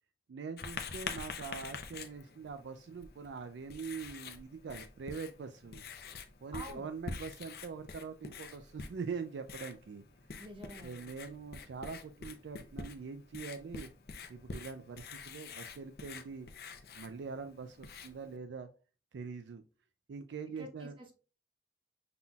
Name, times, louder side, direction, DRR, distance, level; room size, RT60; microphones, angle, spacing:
voice 1, 0.3-5.8 6.4-10.0 10.8-13.9 14.3-16.5 17.0-18.7 19.1-19.6 20.1-20.9, right 5 dB, 85° right, 0.4 m, -43 dB
Writing, 0.6-18.4, left 4 dB, 55° left, 0.6 m, -47 dB
voice 2, 6.5-6.9 10.4-11.1 20.6-21.2, equal, 30° right, 0.8 m, -48 dB
5.6 x 3.9 x 2.3 m
head